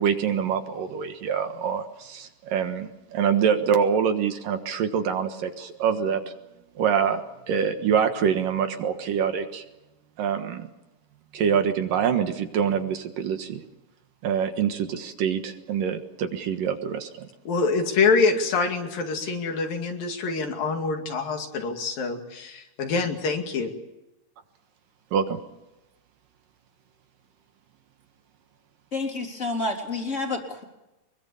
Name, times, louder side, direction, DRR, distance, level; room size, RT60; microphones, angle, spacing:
voice 1, 0.0-6.2 6.8-7.2 7.5-9.6 10.2-10.7 11.3-13.6 14.2-17.3 25.1-25.4, right 7 dB, 65° right, 7 dB, 2.9 m, -25 dB
voice 2, 17.5-23.7, left 4 dB, 65° left, 4 dB, 4.0 m, -25 dB
voice 3, 28.9-30.6, left 2 dB, 20° left, 2 dB, 3.4 m, -29 dB
24.5 x 22.5 x 7.1 m, 0.95 s
omnidirectional pair, 4.5 m